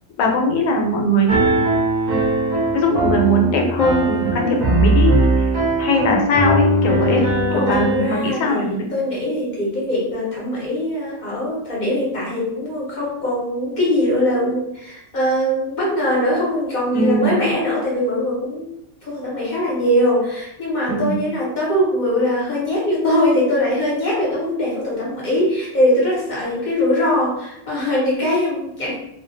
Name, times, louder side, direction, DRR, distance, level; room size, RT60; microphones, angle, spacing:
voice 1, 0.2-1.7 2.7-5.5 5.8-7.3 7.5-8.9 16.9-17.4 20.9-21.2, equal, 80° left, 2 dB, 1.0 m, -20 dB
Piano, 1.3-8.1, right 2 dB, 70° right, 0.4 m, -19 dB
voice 2, 7.5-18.6 19.0-28.9, left 1 dB, 45° left, -5 dB, 0.7 m, -21 dB
2.3 x 2.1 x 2.5 m, 0.81 s
omnidirectional pair, 1.4 m